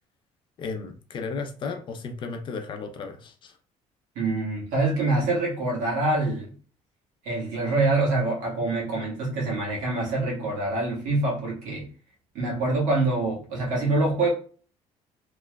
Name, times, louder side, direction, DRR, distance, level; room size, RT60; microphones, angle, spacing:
voice 1, 0.6-3.6, left 4 dB, 40° left, 4 dB, 0.5 m, -34 dB
voice 2, 4.1-6.5 7.2-11.9 12.3-14.3, right 2 dB, 80° right, -3 dB, 1.5 m, -25 dB
3.4 x 3.0 x 2.2 m, 0.40 s
cardioid pair, 155°, 13 cm